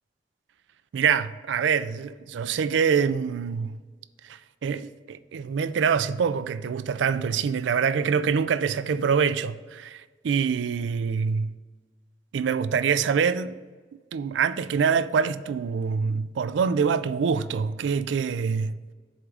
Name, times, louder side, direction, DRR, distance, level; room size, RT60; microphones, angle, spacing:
voice 1, 0.9-3.8 4.3-11.5 12.3-13.5 14.1-18.8, right 6 dB, 80° right, 0.3 m, -25 dB
8.0 x 3.6 x 5.0 m
head